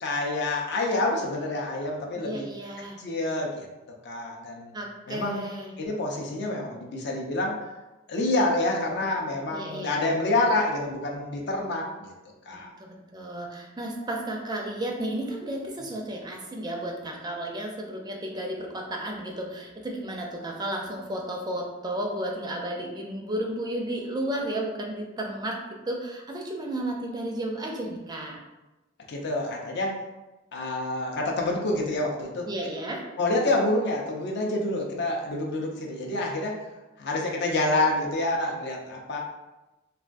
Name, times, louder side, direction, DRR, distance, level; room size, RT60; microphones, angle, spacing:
voice 1, 0.0-2.5 3.0-3.7 4.0-4.7 5.1-5.5 5.8-7.6 8.1-12.1 12.5-12.7 29.1-30.0 30.5-32.5 33.2-36.6 37.0-39.2, left 2 dB, 60° left, 0 dB, 0.5 m, -27 dB
voice 2, 2.1-3.0 4.7-5.7 9.5-9.9 12.5-25.6 25.9-28.4 32.4-33.0, right 1 dB, 20° right, 0 dB, 0.4 m, -33 dB
3.4 x 2.2 x 2.5 m, 1.0 s
head